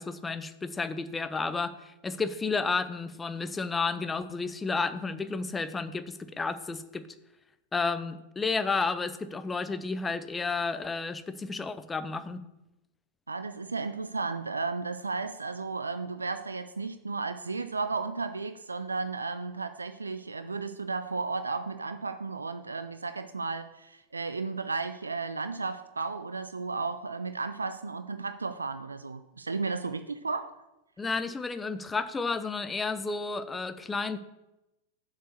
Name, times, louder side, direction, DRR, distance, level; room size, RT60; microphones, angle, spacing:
voice 1, 0.0-7.1 7.7-12.4 31.0-34.2, left 4 dB, 15° left, 12 dB, 0.5 m, -32 dB
voice 2, 13.3-30.5, right 4 dB, 80° right, 10 dB, 0.3 m, -34 dB
7.3 x 4.8 x 7.0 m, 0.93 s
figure-of-eight pair, 90°, 0 cm